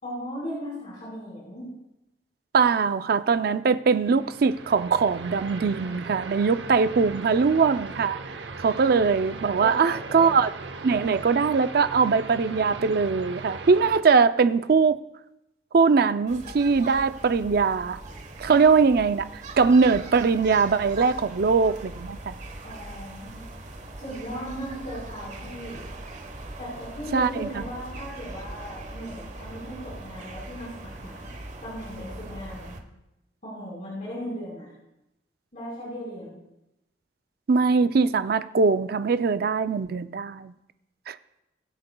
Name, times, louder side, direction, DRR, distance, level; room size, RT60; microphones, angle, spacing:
voice 1, 0.0-1.7 9.6-10.3 22.6-23.4 24.0-25.8 26.6-31.4 31.6-32.8 33.4-34.7 35.5-36.4, equal, 45° left, 4.5 m, -37 dB
voice 2, 2.5-8.2 8.6-10.5 10.8-15.0 15.7-18.0 18.4-22.3 27.1-27.6 37.5-40.5 41.1-41.2, right 5 dB, 60° right, 0.4 m, -21 dB
sound 1, 4.0-14.0, right 3 dB, 80° right, 0.8 m, -39 dB
sound 2, 16.3-32.8, right 2 dB, 45° right, 1.1 m, -41 dB
22.0 x 7.8 x 2.3 m
head